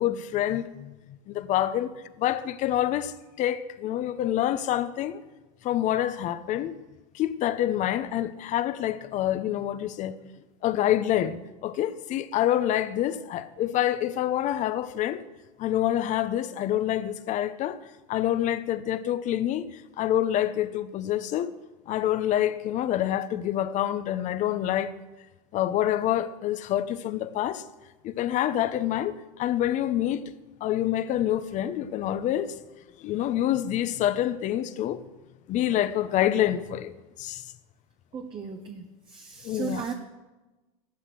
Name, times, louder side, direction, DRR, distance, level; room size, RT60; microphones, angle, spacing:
voice 1, 0.0-1.9 2.2-5.2 5.6-6.7 7.1-10.2 10.6-15.2 15.6-17.8 18.1-21.5 21.9-24.9 25.5-27.6 28.0-30.2 30.6-32.5 33.0-35.0 35.5-37.4 39.4-39.8, left 12 dB, 45° left, 0.9 m, -27 dB
voice 2, 38.1-39.9, right 6 dB, 30° right, 1.1 m, -36 dB
14.0 x 11.5 x 6.2 m
supercardioid pair, 120°, 18 cm